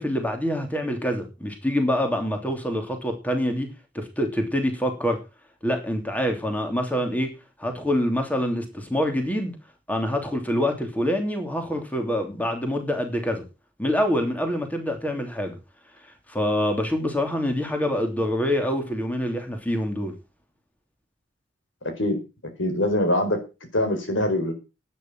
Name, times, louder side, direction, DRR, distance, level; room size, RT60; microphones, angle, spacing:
voice 1, 0.0-3.7 3.9-5.2 5.6-7.3 7.6-9.6 9.9-13.4 13.8-15.6 16.3-20.2, equal, 10° left, 4 dB, 2.9 m, -26 dB
voice 2, 21.8-22.2 22.6-23.4 23.7-24.5, left 1 dB, 90° left, 6 dB, 4.4 m, -23 dB
12.0 x 9.4 x 6.1 m, 0.29 s
head